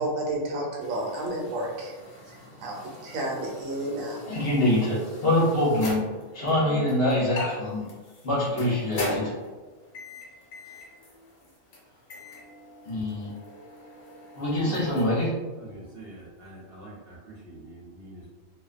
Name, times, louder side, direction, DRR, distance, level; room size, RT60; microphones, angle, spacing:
voice 1, 0.0-4.4, right 1 dB, 80° right, -2 dB, 1.0 m, -32 dB
sound 1, 0.8-15.3, left 2 dB, 75° left, 1.0 m, -40 dB
voice 2, 4.3-6.0 6.3-7.9 8.2-9.3 12.8-13.3 14.4-15.3, left 1 dB, 55° left, -7 dB, 0.8 m, -24 dB
voice 3, 15.6-17.2 17.4-18.2, right 1 dB, 60° right, -7 dB, 0.7 m, -45 dB
2.4 x 2.2 x 2.4 m, 1.3 s
omnidirectional pair, 1.4 m